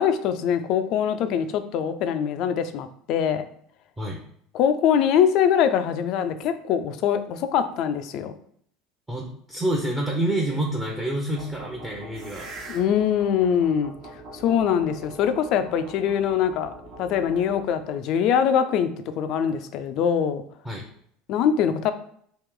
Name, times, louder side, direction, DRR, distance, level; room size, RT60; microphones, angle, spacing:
voice 1, 0.0-3.5 4.5-8.3 12.7-13.9 14.3-16.7 17.0-18.9 19.2-20.4 21.3-21.9, left 8 dB, 60° left, 10 dB, 0.4 m, -23 dB
voice 2, 9.1-12.5 20.6-20.8, right 1 dB, 15° right, -3 dB, 0.7 m, -27 dB
sound 1, 11.4-17.9, right 2 dB, 50° right, 1.0 m, -42 dB
3.0 x 2.9 x 3.6 m, 0.64 s
supercardioid pair, 115°, 0 cm